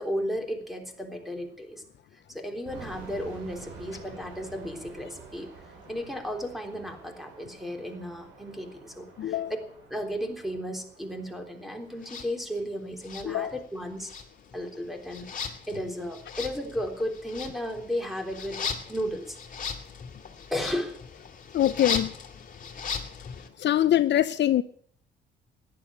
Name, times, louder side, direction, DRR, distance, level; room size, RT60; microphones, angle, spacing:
voice 1, 0.0-1.8 2.3-5.5 5.9-9.4 9.9-14.1 14.5-19.4 20.5-21.0, equal, ahead, 3.5 m, -34 dB
sound 1, 2.7-13.5, right 4 dB, 85° right, 7.0 m, -49 dB
voice 2, 9.2-9.5 13.2-13.5 21.5-22.1 23.6-24.6, left 12 dB, 60° left, 0.6 m, -23 dB
sound 2, 12.0-12.3 13.0-13.8 14.0-23.5, left 6 dB, 40° left, 2.6 m, -37 dB
14.5 x 11.0 x 8.3 m
cardioid pair, 90°, 20 cm